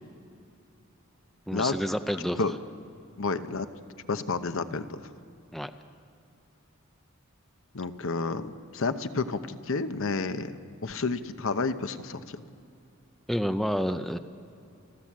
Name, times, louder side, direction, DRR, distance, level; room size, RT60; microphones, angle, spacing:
voice 1, 1.5-2.4 5.5-5.7 13.3-14.2, equal, ahead, 8 dB, 0.6 m, -29 dB
voice 2, 3.2-3.7 4.1-5.1 7.7-12.4, left 4 dB, 65° left, 10 dB, 0.9 m, -30 dB
30.0 x 11.5 x 7.5 m, 2.6 s
head